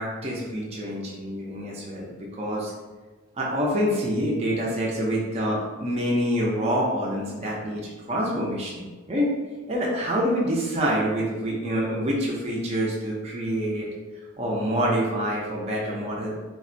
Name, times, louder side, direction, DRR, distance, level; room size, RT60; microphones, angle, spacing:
voice 1, 0.0-2.7 3.4-9.3 9.7-13.9 14.4-16.4, equal, 30° right, -4 dB, 0.4 m, -26 dB
3.5 x 2.1 x 2.5 m, 1.3 s
head